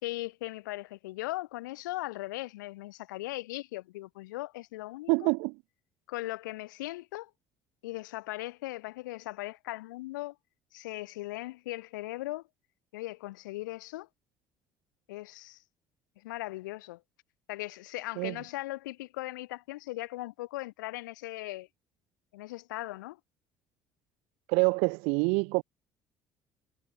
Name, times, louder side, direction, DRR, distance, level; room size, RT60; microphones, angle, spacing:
voice 1, 0.0-5.3 6.1-7.3 7.8-10.4 10.7-12.4 12.9-14.1 15.1-15.6 16.2-17.0 17.5-21.7 22.3-23.2, left 19 dB, 85° left, 3.9 m, -38 dB
voice 2, 5.1-5.5 18.2-18.4 24.5-25.6, right 33 dB, 75° right, 0.7 m, -26 dB
hypercardioid pair, 60°, 10 cm